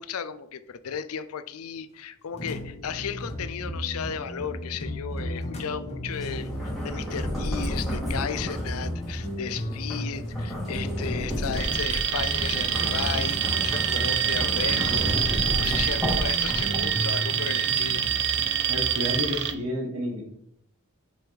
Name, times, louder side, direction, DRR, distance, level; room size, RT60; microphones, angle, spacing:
voice 1, 0.0-18.1, left 7 dB, 70° left, 12 dB, 0.5 m, -35 dB
sound 1, 2.3-19.2, equal, 30° left, 1.3 m, -35 dB
sound 2, 6.1-17.1, equal, ahead, 2.4 m, -32 dB
Alarm, 11.5-19.5, right 9 dB, 55° right, 0.6 m, -26 dB
voice 2, 18.7-20.2, left 1 dB, 90° right, 0 dB, 1.7 m, -30 dB
5.4 x 5.2 x 4.6 m, 0.73 s
head